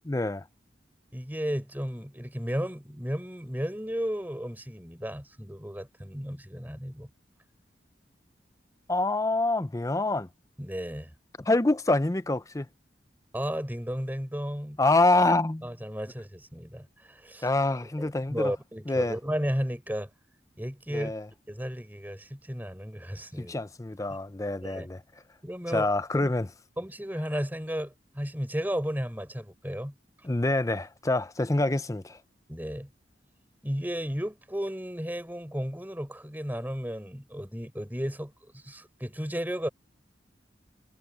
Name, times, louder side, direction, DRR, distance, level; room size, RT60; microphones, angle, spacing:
voice 1, 0.1-0.4 8.9-10.3 11.4-12.7 14.8-15.7 17.4-18.5 18.9-19.2 20.9-21.2 23.4-25.0 25.7-26.5 30.2-32.2, left 2 dB, 20° left, 0.6 m, -26 dB
voice 2, 1.1-7.1 10.6-11.1 13.3-14.8 15.6-17.5 18.0-20.1 20.6-21.1 21.5-23.6 24.6-24.9 25.4-26.3 26.8-29.9 32.5-32.9 33.6-39.7, equal, 10° right, 4.5 m, -34 dB
head